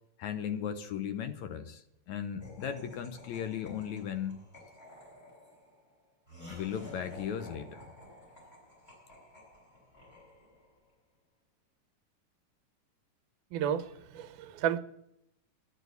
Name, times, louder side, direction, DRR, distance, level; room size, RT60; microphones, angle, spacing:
voice 1, 0.2-4.3 6.5-7.8, left 8 dB, 70° left, 9 dB, 2.3 m, -37 dB
Laughter, 2.4-10.8, left 1 dB, 15° left, 8.1 m, -52 dB
voice 2, 13.5-13.9 14.2-14.8, right 9 dB, 80° right, 10 dB, 2.5 m, -31 dB
11.0 x 11.0 x 8.3 m, 0.77 s
omnidirectional pair, 3.7 m